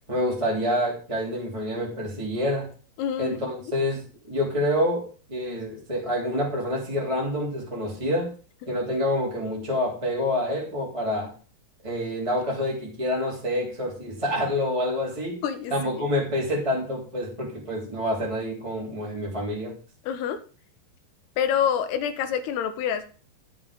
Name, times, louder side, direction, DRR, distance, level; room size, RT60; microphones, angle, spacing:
voice 1, 0.1-2.7 3.2-5.0 5.3-8.3 8.7-11.3 11.8-15.4 15.7-19.7, left 1 dB, 10° right, -3 dB, 2.4 m, -27 dB
voice 2, 3.0-3.4 15.4-16.1 20.1-20.4 21.4-23.1, left 8 dB, 75° left, 11 dB, 2.8 m, -27 dB
12.0 x 7.1 x 5.0 m, 0.38 s
omnidirectional pair, 5.0 m